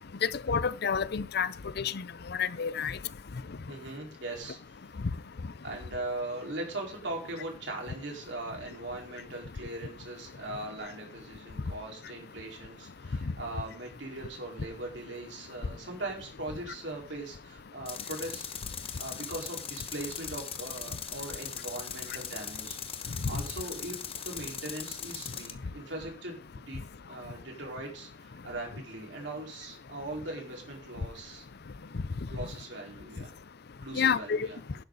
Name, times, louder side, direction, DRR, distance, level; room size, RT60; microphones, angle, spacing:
voice 1, 0.2-1.5 1.8-2.0 2.4-3.0 33.9-34.5, left 6 dB, 60° left, 0.6 m, -28 dB
voice 2, 3.7-4.6 5.6-18.5 19.0-24.0 24.2-31.4 32.3-33.3 33.8-34.6, right 2 dB, 75° right, 4.6 m, -40 dB
Tools, 17.9-25.5, left 7 dB, 30° left, 1.1 m, -40 dB
11.5 x 11.5 x 4.0 m
head